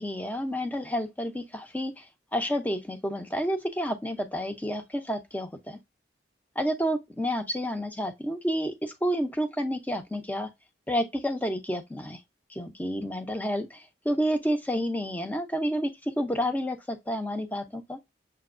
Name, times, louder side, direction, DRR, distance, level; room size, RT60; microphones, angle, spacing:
voice 1, 0.0-2.1 2.3-5.8 6.6-10.5 10.9-12.2 12.5-18.0, equal, 10° left, 0.6 m, -30 dB
6.7 x 2.8 x 2.5 m
head